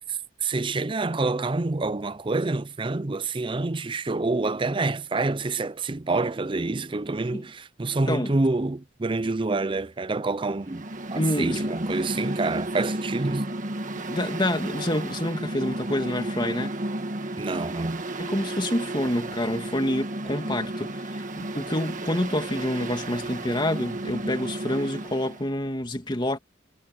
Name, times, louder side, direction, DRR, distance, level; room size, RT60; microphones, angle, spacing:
voice 1, 0.4-10.8 11.1-13.5 17.4-18.0, right 3 dB, 25° right, 0.6 m, -27 dB
Mechanical fan, 10.6-25.4, right 1 dB, 45° right, 1.6 m, -33 dB
voice 2, 11.2-11.6 14.0-16.7 18.2-26.4, left 1 dB, 25° left, 2.7 m, -27 dB
head